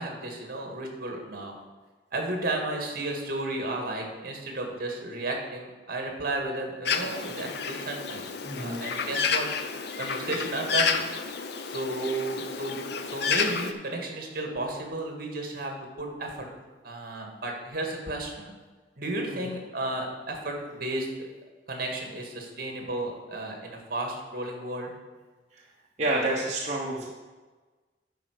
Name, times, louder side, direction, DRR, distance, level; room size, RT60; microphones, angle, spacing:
voice 1, 0.0-1.5 2.1-9.5 10.0-11.1 11.6-16.5 16.8-18.5 19.0-21.3 21.7-24.9, right 2 dB, 55° right, 2 dB, 1.9 m, -33 dB
Bird, 6.8-13.7, left 6 dB, 65° left, 0.7 m, -30 dB
voice 2, 8.4-8.8 19.3-19.4 25.5-25.6 26.0-27.1, right 1 dB, 40° right, -4 dB, 1.1 m, -29 dB
10.5 x 4.6 x 6.5 m, 1.3 s
head